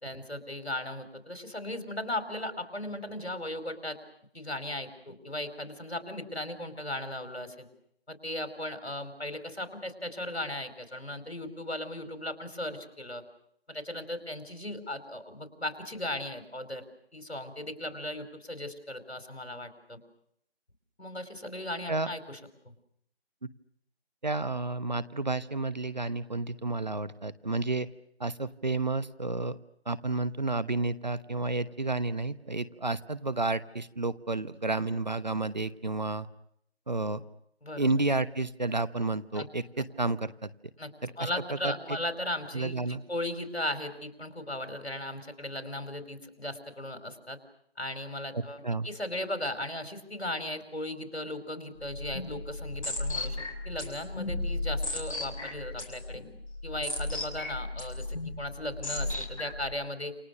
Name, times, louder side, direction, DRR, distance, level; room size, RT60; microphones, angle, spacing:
voice 1, 0.0-4.0 4.3-7.7 8.1-13.2 13.7-16.8 17.1-20.0 21.0-22.4 22.6-22.7 37.6-37.9 39.3-39.5 39.8-39.9 40.8-40.9 41.2-47.4 47.8-56.2 56.6-60.2, left 1 dB, 80° left, 8 dB, 4.9 m, -37 dB
voice 2, 24.2-27.9 28.2-29.6 29.9-36.3 36.9-37.2 37.8-40.5 41.0-41.3 41.6-42.0 42.5-43.0 48.3-48.9, right 2 dB, 45° right, 15 dB, 1.0 m, -31 dB
sound 1, 51.8-59.7, left 2 dB, 30° left, 5.6 m, -35 dB
28.5 x 26.5 x 6.6 m, 0.71 s
figure-of-eight pair, 170°, 32 cm